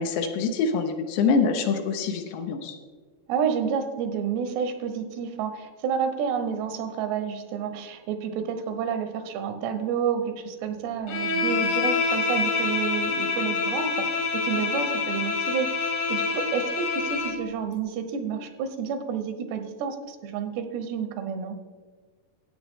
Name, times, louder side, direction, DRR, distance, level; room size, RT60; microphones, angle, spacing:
voice 1, 0.0-2.8, left 5 dB, 85° left, 4 dB, 3.0 m, -25 dB
voice 2, 3.3-21.6, right 7 dB, 85° right, 8 dB, 3.0 m, -30 dB
Bowed string instrument, 11.1-17.4, left 4 dB, 60° left, 1.6 m, -26 dB
13.0 x 8.9 x 3.6 m, 1.5 s
omnidirectional pair, 4.8 m